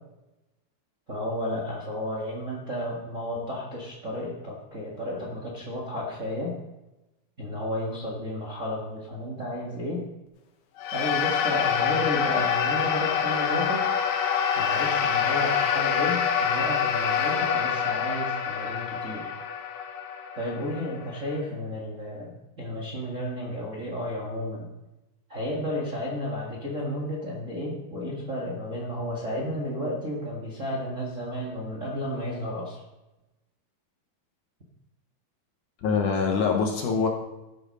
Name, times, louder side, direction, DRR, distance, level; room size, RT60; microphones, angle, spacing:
voice 1, 1.1-6.5 7.4-10.0 10.9-13.8 14.5-19.3 20.3-22.3 22.6-24.7 25.3-32.8, left 1 dB, 35° right, -3 dB, 1.3 m, -32 dB
sound 1, 10.8-21.3, left 7 dB, 85° left, 3.1 m, -26 dB
voice 2, 35.8-37.1, left 5 dB, 65° left, 2 dB, 2.4 m, -24 dB
13.0 x 8.2 x 5.4 m, 0.99 s
omnidirectional pair, 4.3 m